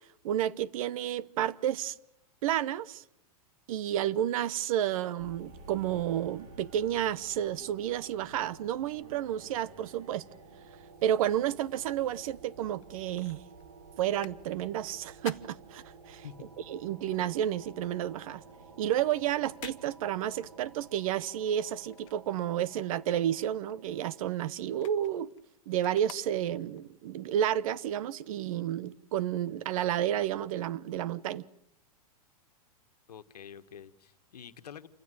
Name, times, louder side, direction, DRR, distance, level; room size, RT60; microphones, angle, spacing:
voice 1, 0.2-1.9 2.4-3.0 3.7-10.2 11.0-13.4 14.0-16.2 16.7-18.4 18.8-25.3 25.7-31.4, right 11 dB, 60° right, 1.1 m, -31 dB
sound 1, 5.2-24.3, right 4 dB, 75° right, 4.8 m, -52 dB
sound 2, 12.8-16.4 16.8-22.8 23.1-26.9 27.4-27.5, left 16 dB, 55° left, 1.2 m, -53 dB
voice 2, 33.1-34.9, left 8 dB, 90° left, 1.5 m, -47 dB
28.0 x 16.0 x 9.3 m
hypercardioid pair, 125°, 20 cm